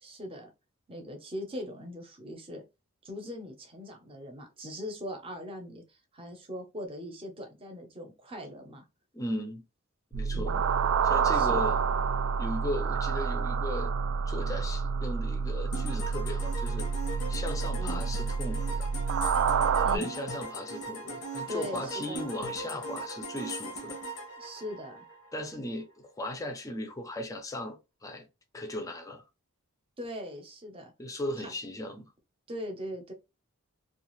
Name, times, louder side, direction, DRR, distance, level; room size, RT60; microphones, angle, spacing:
voice 1, 0.0-0.5 0.9-2.6 3.0-8.8 10.3-10.6 11.3-11.6 17.8-18.0 19.8-20.1 21.5-22.3 24.4-25.0 30.0-30.9 31.4-31.5 32.5-33.1, left 1 dB, 25° right, 0.7 m, -40 dB
voice 2, 9.1-9.6 10.1-10.6 11.0-11.8 12.4-13.9 14.3-16.9 17.3-18.9 19.9-24.0 25.3-28.3 28.5-29.2 31.0-32.1, left 1 dB, 15° left, 0.5 m, -37 dB
sound 1, 10.1-20.0, right 6 dB, 65° right, 0.3 m, -28 dB
sound 2, 15.7-25.4, right 1 dB, 85° left, 0.8 m, -39 dB
2.4 x 2.4 x 3.0 m
head